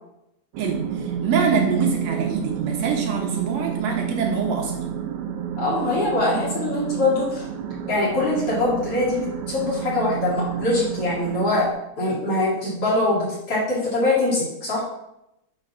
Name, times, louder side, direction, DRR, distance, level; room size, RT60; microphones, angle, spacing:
sound 1, 0.5-11.7, right 9 dB, 80° right, 1.6 m, -30 dB
voice 1, 0.6-4.9, right 5 dB, 55° right, 0 dB, 2.2 m, -25 dB
voice 2, 5.6-7.5 7.9-11.7 12.0-14.8, left 2 dB, 45° left, -7 dB, 3.1 m, -23 dB
9.2 x 4.2 x 5.7 m, 0.86 s
omnidirectional pair, 4.0 m